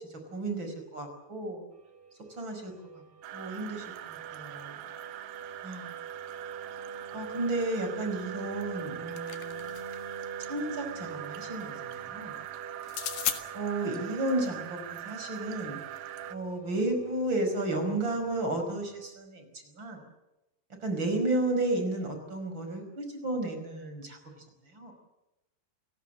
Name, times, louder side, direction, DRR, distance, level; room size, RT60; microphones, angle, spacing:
voice 1, 0.3-1.6 2.4-2.7 3.3-4.8 5.6-6.0 7.1-9.7 10.4-12.4 13.5-15.8 16.3-19.4 19.7-20.0 20.8-24.4 24.7-24.9, right 2 dB, 30° right, 6 dB, 5.6 m, -33 dB
sound 1, 1.7-19.1, right 6 dB, 50° right, 4.6 m, -45 dB
sound 2, 3.2-16.4, right 12 dB, 70° right, 2.6 m, -42 dB
sound 3, 8.8-10.1 12.8-13.4, left 11 dB, 75° left, 3.5 m, -35 dB
29.5 x 18.0 x 7.7 m, 0.96 s
omnidirectional pair, 4.5 m